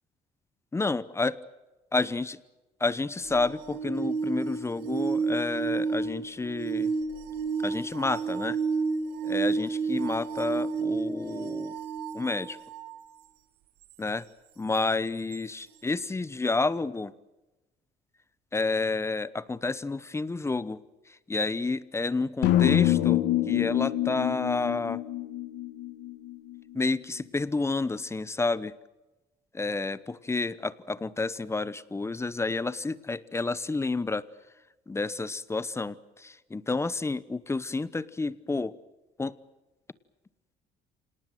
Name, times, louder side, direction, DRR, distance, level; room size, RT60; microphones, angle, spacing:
voice 1, 0.7-1.4 1.9-2.4 2.8-6.9 7.6-8.6 9.2-11.7 12.1-12.6 14.0-14.3 14.6-17.1 18.5-25.0 26.7-28.7 29.5-34.2 34.9-38.7 39.2-39.4, left 3 dB, 15° left, 17 dB, 1.0 m, -30 dB
sound 1, 3.2-13.0 15.3-15.4, right 4 dB, 85° right, 1.7 m, -31 dB
sound 2, 22.4-26.6, left 13 dB, 85° left, 1.9 m, -26 dB
26.5 x 19.0 x 9.1 m, 1.1 s
cardioid pair, 110°, 17 cm